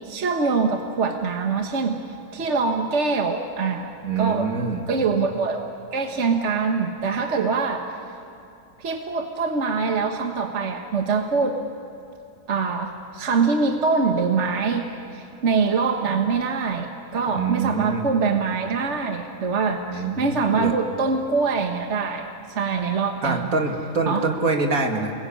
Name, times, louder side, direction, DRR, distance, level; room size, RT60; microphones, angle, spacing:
voice 1, 0.0-2.0 2.3-4.5 4.9-5.7 5.9-7.8 8.8-11.6 12.5-14.9 15.1-22.3 22.5-23.5 24.1-24.2, right 4 dB, 55° right, 4 dB, 1.6 m, -24 dB
voice 2, 4.0-4.8 17.3-18.1 19.9-20.7 23.2-25.1, right 4 dB, 75° right, 3 dB, 2.7 m, -25 dB
30.0 x 21.0 x 8.7 m, 2.7 s
omnidirectional pair, 1.5 m